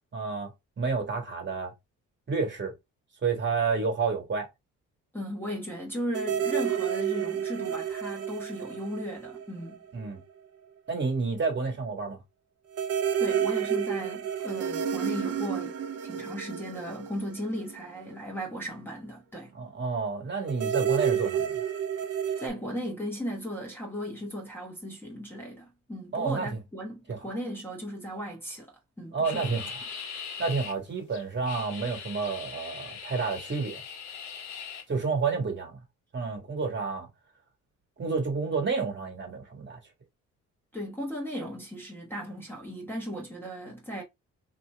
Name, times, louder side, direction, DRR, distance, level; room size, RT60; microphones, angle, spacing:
voice 1, 0.1-1.7 2.3-2.7 3.2-4.5 9.9-10.2 10.9-12.2 19.5-21.6 26.1-26.6 27.1-27.3 29.1-29.8 30.4-33.8 34.9-35.8 36.1-37.1 38.0-39.8, right 4 dB, 40° right, 1.7 m, -30 dB
voice 2, 5.1-9.8 13.2-15.8 16.0-19.5 22.4-29.5 40.7-44.0, equal, 5° left, 1.2 m, -36 dB
sound 1, 6.1-9.9 10.2-10.3 12.7-18.1 20.5-22.5, right 8 dB, 55° right, 0.6 m, -30 dB
sound 2, 29.2-30.7 31.1-34.8, left 6 dB, 65° left, 1.0 m, -40 dB
2.9 x 2.8 x 3.4 m
cardioid pair, 90°, 30 cm